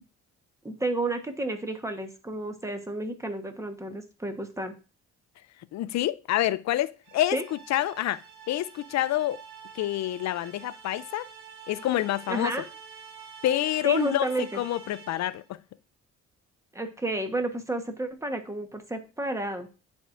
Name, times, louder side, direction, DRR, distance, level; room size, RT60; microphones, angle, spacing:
voice 1, 0.6-4.7 7.3-7.4 12.3-12.6 13.8-14.5 16.7-19.7, right 2 dB, 10° right, 1.1 m, -31 dB
voice 2, 5.7-8.2 8.5-9.4 9.7-11.3 11.7-12.5 13.4-14.3 14.6-15.6, left 13 dB, 65° left, 0.5 m, -27 dB
sound 1, 7.0-15.5, right 6 dB, 80° right, 1.8 m, -47 dB
10.0 x 4.6 x 2.5 m
cardioid pair, 90°, 30 cm